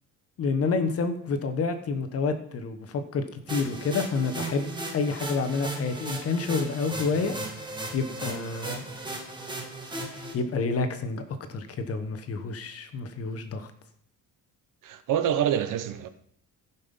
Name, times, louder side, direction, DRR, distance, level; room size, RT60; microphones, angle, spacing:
voice 1, 0.4-7.3 7.9-8.8 10.1-11.2 11.5-13.7, left 4 dB, 45° left, 1.1 m, -29 dB
sound 1, 3.5-10.3, right 2 dB, 15° right, 1.6 m, -36 dB
voice 2, 14.8-16.1, right 9 dB, 65° right, 0.9 m, -26 dB
15.0 x 5.6 x 5.3 m
cardioid pair, 145°, 34 cm